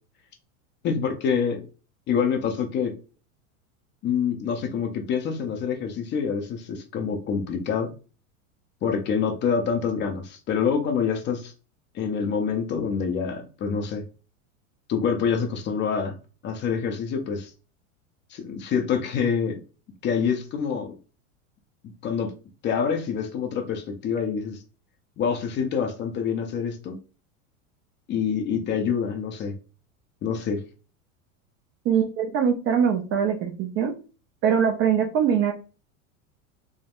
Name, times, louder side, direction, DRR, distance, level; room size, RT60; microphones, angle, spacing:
voice 1, 0.8-1.6 2.1-3.0 4.0-7.9 8.8-11.5 11.9-14.1 14.9-16.2 16.4-17.5 18.3-19.6 20.0-21.0 22.0-22.3 22.6-24.6 25.2-27.0 28.1-29.6 30.2-30.6, left 6 dB, 30° left, 0.5 m, -26 dB
voice 2, 31.9-34.0 34.4-35.5, right 7 dB, 35° right, 0.4 m, -22 dB
3.5 x 2.0 x 2.4 m
hypercardioid pair, 115°, 41 cm